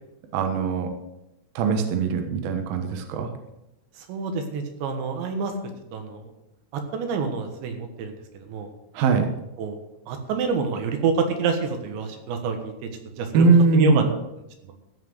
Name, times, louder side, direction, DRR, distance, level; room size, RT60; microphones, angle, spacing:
voice 1, 0.3-0.9 1.6-3.3 8.9-9.3 13.3-14.1, right 4 dB, 65° right, 5 dB, 2.7 m, -21 dB
voice 2, 4.0-5.5 5.9-6.3 6.7-8.7 9.6-9.8 10.1-14.1 14.6-14.7, right 5 dB, 90° right, 5 dB, 3.7 m, -27 dB
14.5 x 5.9 x 7.7 m, 0.90 s
omnidirectional pair, 5.0 m